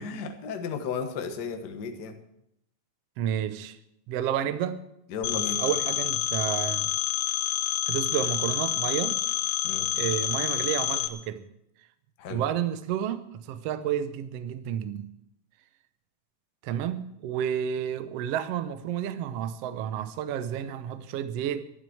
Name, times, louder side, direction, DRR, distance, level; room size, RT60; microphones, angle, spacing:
voice 1, 0.0-2.2 5.1-5.6 9.6-9.9 12.2-12.4, left 5 dB, 70° left, 1.0 m, -34 dB
voice 2, 3.2-3.8 4.1-4.9 5.3-6.9 7.9-9.2 9.9-11.5 12.3-15.1 16.6-21.6, right 9 dB, 75° right, 1.4 m, -31 dB
Telephone, 5.2-11.1, left 12 dB, 90° left, 2.5 m, -28 dB
11.5 x 11.0 x 7.8 m
omnidirectional pair, 3.9 m